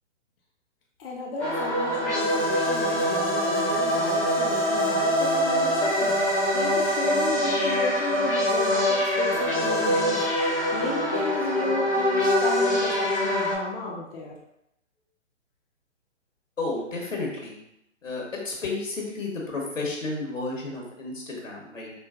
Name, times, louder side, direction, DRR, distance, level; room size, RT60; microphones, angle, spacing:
voice 1, 1.0-10.2 10.7-14.3, left 2 dB, 50° left, -2 dB, 0.7 m, -33 dB
sound 1, 1.4-13.5, equal, 5° left, 0.6 m, -24 dB
voice 2, 16.6-17.5 18.0-21.9, left 3 dB, 90° left, -2 dB, 1.3 m, -32 dB
4.4 x 2.3 x 2.4 m, 0.82 s
figure-of-eight pair, 135°, 38 cm